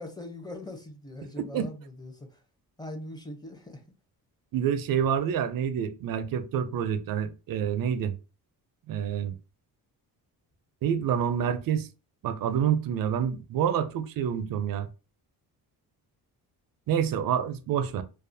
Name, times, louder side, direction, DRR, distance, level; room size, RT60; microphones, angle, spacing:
voice 1, 0.0-1.7 2.0-2.3 2.8-3.8, left 1 dB, 10° left, 0.6 m, -41 dB
voice 2, 1.4-1.7 4.5-8.1 8.9-9.3 10.8-11.9 12.2-14.9 16.9-18.0, right 8 dB, 65° right, 0.5 m, -27 dB
2.4 x 2.3 x 2.6 m
cardioid pair, 90°, 38 cm